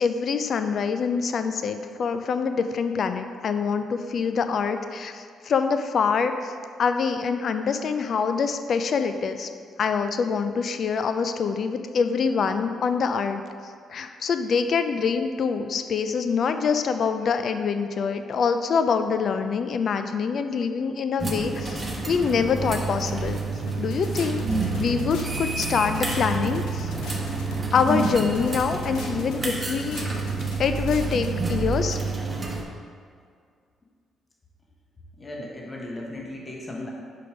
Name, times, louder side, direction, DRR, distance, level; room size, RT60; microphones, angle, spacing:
voice 1, 0.0-6.5 6.8-9.5 9.8-23.4 23.8-24.4 24.8-26.9 27.7-30.0 30.6-32.0, left 5 dB, 55° left, 8 dB, 0.4 m, -25 dB
sound 1, 21.2-32.6, right 3 dB, 25° right, 0.9 m, -29 dB
sound 2, 23.7-31.3, left 3 dB, 85° left, 0.8 m, -40 dB
Piano, 24.5-32.1, right 5 dB, 70° right, 0.3 m, -37 dB
voice 2, 35.1-36.9, left 1 dB, 25° left, -2 dB, 1.1 m, -36 dB
5.1 x 4.7 x 4.9 m, 2.2 s
cardioid pair, 90°, 0 cm